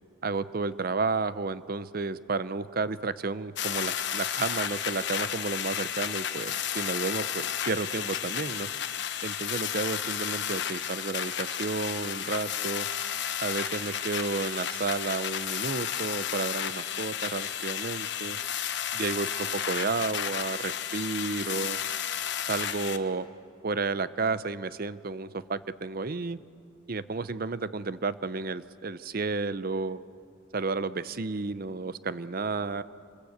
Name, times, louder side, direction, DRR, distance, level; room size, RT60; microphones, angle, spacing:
voice 1, 0.2-8.7 9.2-12.9 13.4-18.4 19.0-21.8 22.5-23.3 23.6-26.4 26.9-30.0 30.5-32.8, right 3 dB, 50° right, 15 dB, 0.6 m, -32 dB
sound 1, 3.6-23.0, left 9 dB, 60° left, 1.2 m, -32 dB
26.5 x 21.5 x 8.1 m, 2.3 s
head